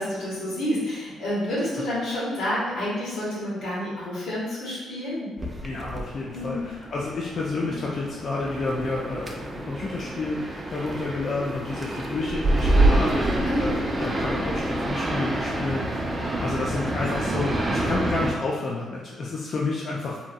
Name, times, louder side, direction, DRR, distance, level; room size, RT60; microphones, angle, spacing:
voice 1, 0.0-5.3 6.3-6.6 13.4-13.8, left 1 dB, 80° left, -8 dB, 1.3 m, -29 dB
sound 1, 5.4-18.3, right 1 dB, 25° right, 0.4 m, -27 dB
voice 2, 5.6-16.0 16.4-20.2, left 3 dB, 50° left, -4 dB, 0.4 m, -30 dB
2.8 x 2.6 x 2.2 m, 1.2 s
cardioid pair, 90°, 0 cm